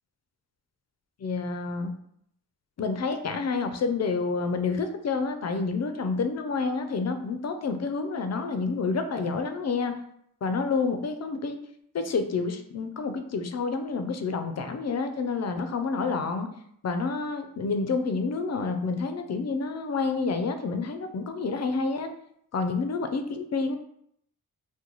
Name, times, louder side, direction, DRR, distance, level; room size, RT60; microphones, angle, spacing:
voice 1, 1.2-2.0 2.8-9.9 10.4-11.6 11.9-16.5 16.8-22.1 22.5-23.7, left 4 dB, 45° left, 7 dB, 0.5 m, -29 dB
3.0 x 2.1 x 3.9 m, 0.71 s
cardioid pair, 75°, 39 cm